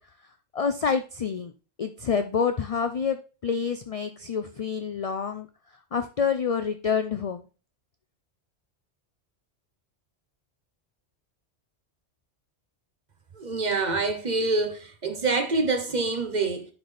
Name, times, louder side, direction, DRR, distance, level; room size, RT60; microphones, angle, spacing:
voice 1, 0.5-1.5 1.8-5.5 5.9-7.4, left 6 dB, 55° left, 0.4 m, -27 dB
voice 2, 13.4-16.7, right 3 dB, 45° right, 1.0 m, -26 dB
10.5 x 4.0 x 3.3 m
omnidirectional pair, 1.1 m